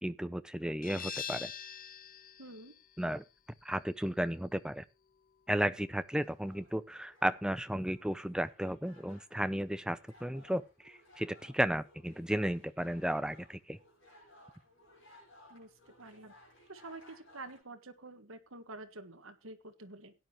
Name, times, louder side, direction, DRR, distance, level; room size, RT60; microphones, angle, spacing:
voice 1, 0.0-1.5 3.0-3.2 3.6-4.8 5.5-13.8, right 1 dB, 5° right, 0.5 m, -34 dB
sound 1, 0.8-6.2, left 8 dB, 40° left, 0.8 m, -46 dB
voice 2, 2.4-2.7 15.5-15.7 16.0-16.3 16.7-20.1, right 2 dB, 75° right, 1.7 m, -48 dB
sound 2, 6.2-17.6, left 1 dB, 60° left, 7.8 m, -61 dB
17.0 x 10.0 x 3.0 m
head